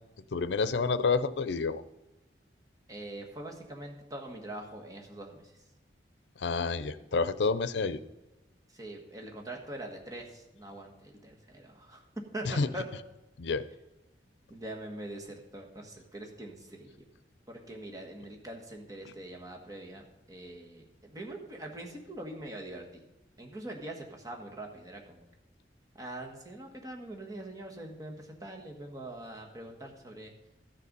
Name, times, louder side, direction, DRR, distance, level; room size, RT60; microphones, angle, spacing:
voice 1, 0.3-1.8 6.4-8.0 12.4-12.7 13.4-13.7, left 4 dB, 85° left, 15 dB, 0.6 m, -29 dB
voice 2, 2.9-5.4 8.7-12.0 12.3-12.8 14.5-17.0 17.5-23.0 23.4-25.3 25.9-30.3, right 1 dB, 20° right, 1 dB, 1.6 m, -43 dB
13.5 x 6.7 x 5.4 m, 0.99 s
head